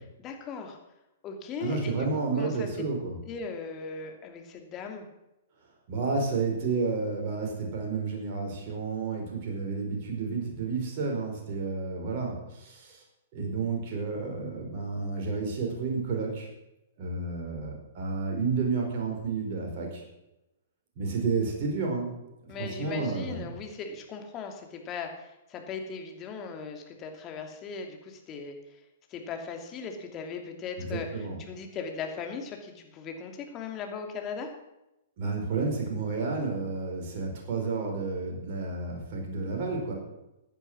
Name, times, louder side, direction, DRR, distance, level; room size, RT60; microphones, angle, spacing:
voice 1, 0.2-0.8 1.2-2.1 2.3-2.7 3.3-5.0 22.5-28.8 29.1-34.5, left 5 dB, 30° left, 4 dB, 2.8 m, -38 dB
voice 2, 1.6-3.2 5.9-13.0 13.3-16.5 17.0-20.0 21.0-22.1 22.5-23.5 30.8-31.4 35.2-39.9, right 4 dB, 45° right, 0 dB, 5.0 m, -31 dB
15.0 x 9.9 x 6.3 m, 0.92 s
figure-of-eight pair, 110°, 0 cm